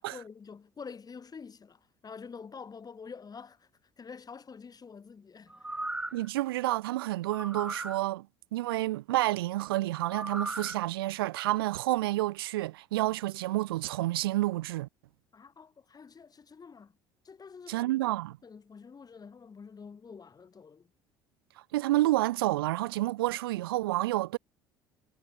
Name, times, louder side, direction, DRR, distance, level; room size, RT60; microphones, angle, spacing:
voice 1, 0.0-3.7 4.0-5.5 15.3-16.9 17.2-17.9 18.4-20.9, left 5 dB, 30° left, 4.4 m, -47 dB
sound 1, 5.5-6.3 7.3-8.0 10.1-10.8 11.2-11.3, right 2 dB, 10° right, 0.7 m, -37 dB
voice 2, 6.1-8.3 8.5-14.9 17.7-18.4 21.7-24.4, right 17 dB, 80° right, 0.5 m, -29 dB
hypercardioid pair, 60°, 12 cm